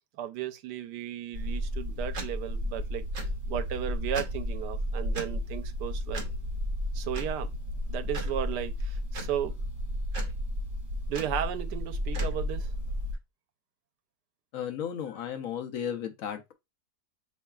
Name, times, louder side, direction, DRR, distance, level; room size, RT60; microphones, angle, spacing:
voice 1, 0.2-6.2 6.9-7.5 7.9-9.5 11.1-12.7, right 10 dB, 90° right, 1.2 m, -35 dB
sound 1, 1.3-13.1, equal, 50° right, 1.1 m, -33 dB
voice 2, 14.5-16.5, left 8 dB, 70° left, 0.8 m, -34 dB
4.4 x 3.1 x 2.3 m
omnidirectional pair, 1.7 m